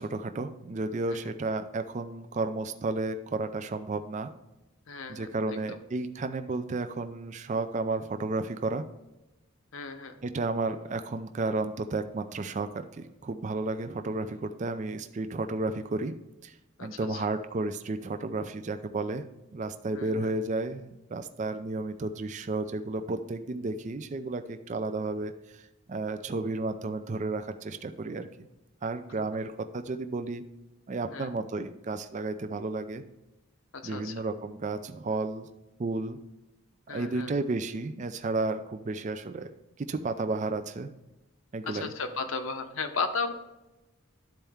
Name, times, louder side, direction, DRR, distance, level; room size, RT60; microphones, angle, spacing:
voice 1, 0.0-4.3 5.1-8.8 10.2-16.1 16.4-16.5 16.8-19.3 19.5-25.6 25.9-28.3 28.8-30.4 30.9-33.0 33.8-35.5 35.8-36.2 36.9-39.5 39.8-40.9 41.5-41.9, right 3 dB, 35° right, 9 dB, 0.4 m, -32 dB
voice 2, 4.9-5.8 9.7-10.2 16.8-17.2 19.9-20.3 31.0-31.3 33.7-34.2 36.9-37.3 41.6-43.3, left 4 dB, 65° left, 7 dB, 0.8 m, -35 dB
12.0 x 4.4 x 3.5 m, 0.99 s
head